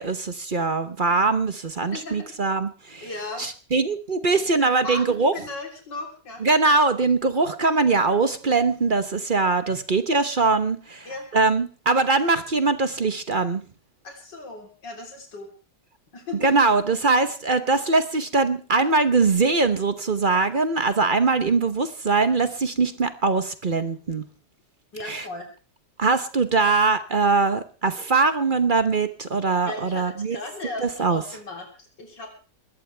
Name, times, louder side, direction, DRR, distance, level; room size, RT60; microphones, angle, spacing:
voice 1, 0.0-3.1 3.4-5.3 6.4-13.6 16.4-24.2 25.1-25.2 26.0-30.4 30.8-31.2, right 4 dB, 35° right, 10 dB, 0.9 m, -22 dB
voice 2, 1.9-2.4 3.0-3.5 4.3-6.5 9.7-9.8 11.1-11.3 14.0-15.5 16.1-16.5 24.9-25.5 29.6-32.3, left 2 dB, 80° left, 1 dB, 4.2 m, -37 dB
21.5 x 17.0 x 3.4 m, 0.36 s
omnidirectional pair, 1.9 m